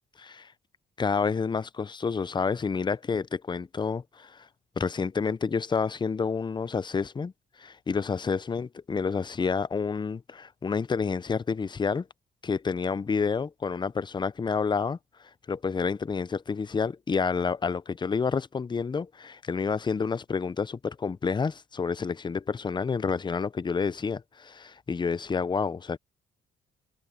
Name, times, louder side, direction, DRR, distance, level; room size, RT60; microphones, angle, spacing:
voice 1, 0.2-0.5 1.0-4.5 4.8-7.3 7.6-12.1 12.4-15.0 15.5-26.0, left 5 dB, 25° left, 0.5 m, -29 dB
cardioid pair, 90°, 20 cm